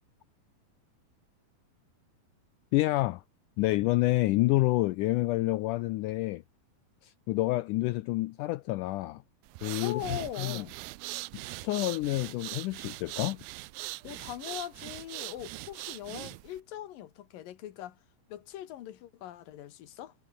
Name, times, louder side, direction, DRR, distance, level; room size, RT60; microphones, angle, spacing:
voice 1, 2.7-3.2 3.6-6.4 7.0-9.2 9.6-10.7 11.5-13.4, left 18 dB, 90° left, 1.8 m, -28 dB
sound 1, 9.5-16.6, right 22 dB, 85° right, 2.4 m, -41 dB
voice 2, 9.8-10.7 14.0-18.0 18.3-20.1, left 12 dB, 70° left, 3.0 m, -41 dB
omnidirectional pair, 4.3 m